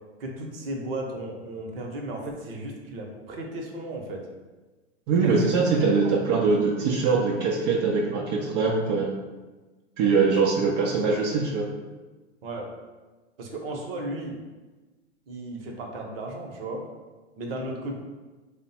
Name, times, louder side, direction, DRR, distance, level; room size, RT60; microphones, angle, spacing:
voice 1, 0.2-4.2 5.2-6.1 12.4-12.7 13.4-14.3 15.3-16.9 17.4-18.0, right 1 dB, 55° right, 1 dB, 0.9 m, -35 dB
voice 2, 5.1-9.1 10.0-11.7, right 4 dB, 35° right, -2 dB, 0.5 m, -22 dB
3.4 x 2.1 x 4.1 m, 1.2 s
hypercardioid pair, 105°, 36 cm